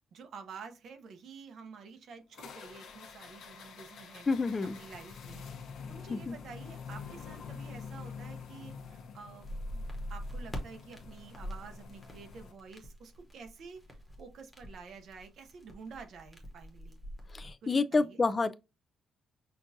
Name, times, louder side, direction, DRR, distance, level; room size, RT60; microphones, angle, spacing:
voice 1, 0.1-4.3 4.8-5.5 5.9-13.8 14.2-17.0 17.6-18.2, right 5 dB, 60° right, 0.8 m, -50 dB
sound 1, 2.3-12.5, left 6 dB, 70° left, 0.9 m, -47 dB
voice 2, 4.3-4.8 6.1-6.4 17.3-18.5, left 3 dB, 20° left, 0.3 m, -29 dB
sound 2, 9.4-17.5, equal, ahead, 1.0 m, -44 dB
5.9 x 2.4 x 2.7 m
cardioid pair, 170°, 0 cm